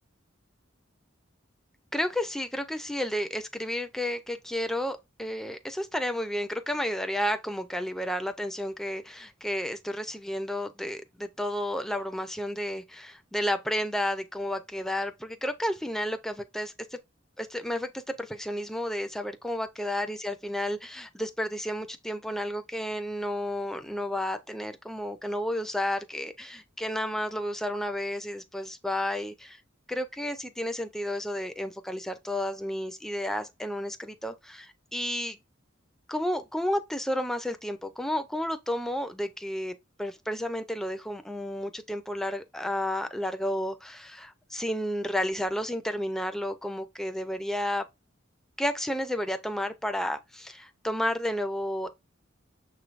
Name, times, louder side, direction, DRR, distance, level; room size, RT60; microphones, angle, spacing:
voice 1, 1.9-17.0 17.4-29.6 29.9-35.4 36.1-47.8 48.6-51.9, left 1 dB, ahead, 0.4 m, -32 dB
6.6 x 3.2 x 2.4 m
head